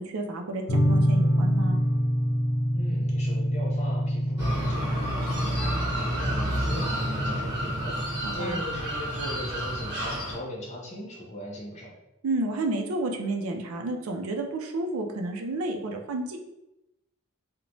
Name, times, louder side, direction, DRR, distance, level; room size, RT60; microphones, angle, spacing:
voice 1, 0.0-1.8 8.2-8.6 12.2-16.4, right 2 dB, 75° right, 3 dB, 0.4 m, -31 dB
sound 1, 0.7-8.3, equal, 80° left, 0.7 m, -26 dB
voice 2, 2.7-11.9, equal, 30° left, -3 dB, 0.6 m, -39 dB
sound 2, 4.4-10.3, equal, 20° right, 1.0 m, -30 dB
2.9 x 2.1 x 2.6 m, 0.92 s
head